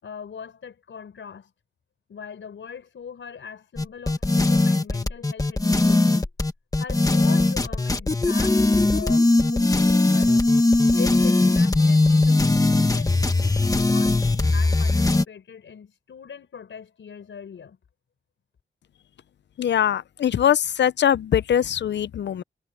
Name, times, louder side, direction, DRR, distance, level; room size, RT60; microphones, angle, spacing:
voice 1, 0.0-1.5 2.1-6.3 6.8-10.4 10.8-13.2 13.7-17.8, left 7 dB, 80° left, 5.9 m, -41 dB
sound 1, 3.8-15.2, left 2 dB, 20° left, 1.3 m, -20 dB
voice 2, 19.6-22.4, left 9 dB, 65° left, 0.5 m, -22 dB
wide cardioid pair, 155°, 19 cm